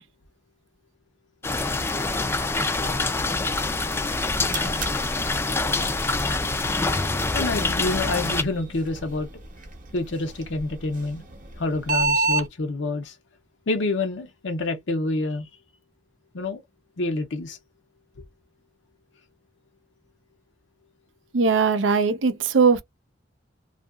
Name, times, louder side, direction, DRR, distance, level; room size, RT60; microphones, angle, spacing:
sound 1, 1.4-8.4, left 3 dB, 15° left, 0.3 m, -25 dB
sound 2, 4.3-12.5, right 3 dB, 45° right, 0.9 m, -32 dB
voice 1, 7.3-9.3 9.9-11.2 11.6-13.2 13.7-15.5 16.3-16.6 17.0-17.6, left 2 dB, 75° left, 0.6 m, -27 dB
voice 2, 21.3-22.8, right 5 dB, 85° right, 0.6 m, -20 dB
2.8 x 2.4 x 2.3 m
head